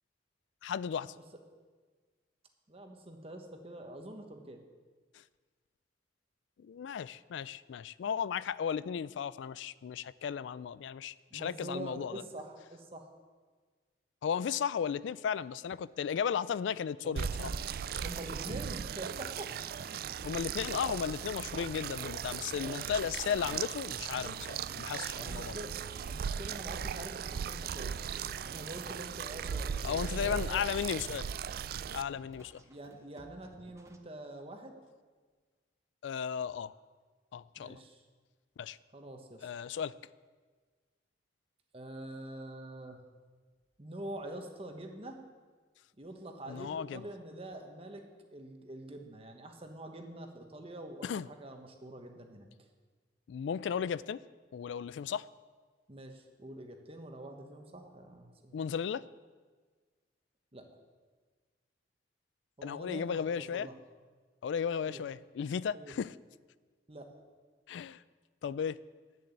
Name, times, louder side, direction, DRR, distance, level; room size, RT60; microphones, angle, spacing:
voice 1, 0.6-1.1 6.6-12.2 14.2-17.5 17.9-18.0 20.2-25.5 29.8-31.3 31.9-32.6 36.0-36.7 37.3-37.8 38.6-38.8 39.4-39.9 46.5-47.0 51.0-51.3 53.3-54.2 54.5-55.3 58.5-59.0 62.6-63.7 64.4-66.1 67.7-68.0 68.4-68.8, left 7 dB, 80° left, 18 dB, 0.3 m, -35 dB
voice 2, 2.7-4.6 11.3-13.1 17.0-17.6 18.0-19.5 22.6-22.9 25.1-25.7 26.1-28.1 28.4-30.6 32.7-34.7 37.6-38.0 38.9-39.5 41.7-43.0 43.8-45.2 46.0-48.0 48.3-52.5 55.9-58.6 60.5-60.6 62.6-63.7 64.8-65.0 65.7-65.9 66.9-67.1, right 1 dB, 30° right, 4 dB, 1.2 m, -45 dB
sound 1, 17.2-32.0, right 7 dB, 55° right, 0.3 m, -38 dB
sound 2, 19.6-34.0, equal, 15° right, 0.7 m, -58 dB
10.5 x 7.0 x 8.0 m, 1.4 s
head